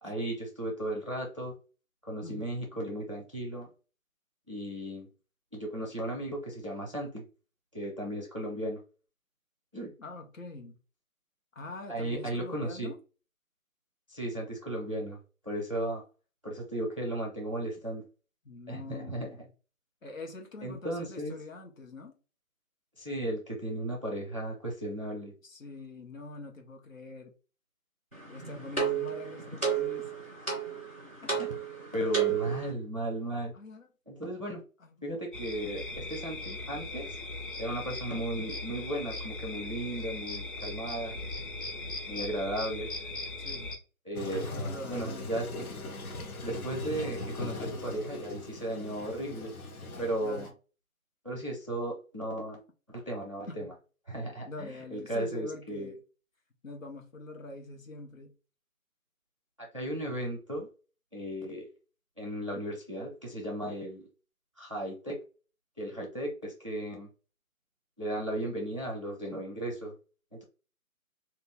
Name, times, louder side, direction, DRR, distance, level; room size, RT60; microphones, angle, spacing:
voice 1, 0.0-1.5 2.0-3.7 4.5-5.1 5.5-7.2 7.7-8.8 9.7-9.9 11.9-12.9 14.1-16.0 16.4-18.0 18.7-19.3 20.6-21.3 23.0-25.3 28.5-28.6 31.4-31.5 31.9-33.5 34.1-34.6 35.0-37.2 37.6-41.2 42.1-42.9 44.1-44.5 44.9-45.5 46.4-49.5 50.0-50.5 51.2-52.6 52.9-53.7 54.1-55.9 59.6-60.7 61.1-61.7 62.2-64.1 64.6-65.2 65.8-67.1 68.0-69.9 70.3-70.4, right 1 dB, 25° right, 0.5 m, -35 dB
voice 2, 10.0-10.8 11.5-13.0 18.4-19.5 20.0-22.2 25.4-27.3 28.3-30.1 31.2-31.5 33.5-33.9 34.8-35.0 43.4-43.7 44.3-45.4 50.2-50.5 53.5-53.7 54.4-56.0 56.6-58.3, left 2 dB, 65° left, 1.1 m, -44 dB
sound 1, 28.1-32.7, right 7 dB, 10° left, 0.8 m, -32 dB
sound 2, 35.3-43.8, left 2 dB, 35° left, 1.0 m, -39 dB
Toilet flush, 44.2-50.5, left 2 dB, 85° left, 1.1 m, -39 dB
3.0 x 2.5 x 3.4 m
figure-of-eight pair, 160°, 42 cm